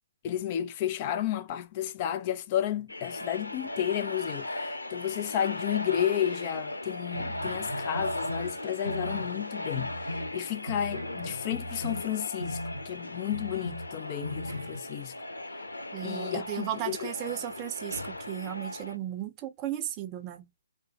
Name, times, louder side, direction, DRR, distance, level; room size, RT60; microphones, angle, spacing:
voice 1, 0.2-9.9 10.3-15.1 16.0-17.1, left 11 dB, 35° left, 0.5 m, -32 dB
sound 1, 2.9-19.0, left 1 dB, 90° left, 0.6 m, -37 dB
sound 2, 7.1-13.0 13.3-14.8, equal, 90° right, 0.8 m, -39 dB
voice 2, 15.9-20.5, right 12 dB, 25° right, 0.6 m, -35 dB
3.2 x 2.1 x 2.8 m
figure-of-eight pair, 135°, 0 cm